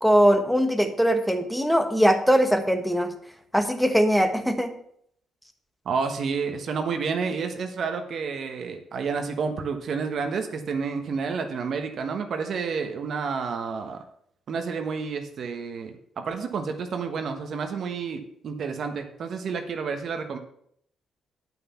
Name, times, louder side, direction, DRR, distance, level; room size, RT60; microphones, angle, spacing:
voice 1, 0.0-3.1 3.5-4.7, equal, ahead, 6 dB, 1.3 m, -21 dB
voice 2, 5.8-14.0 14.5-20.4, right 5 dB, 60° right, 5 dB, 1.3 m, -30 dB
9.4 x 5.9 x 7.0 m, 0.69 s
cardioid pair, 90°, 0 cm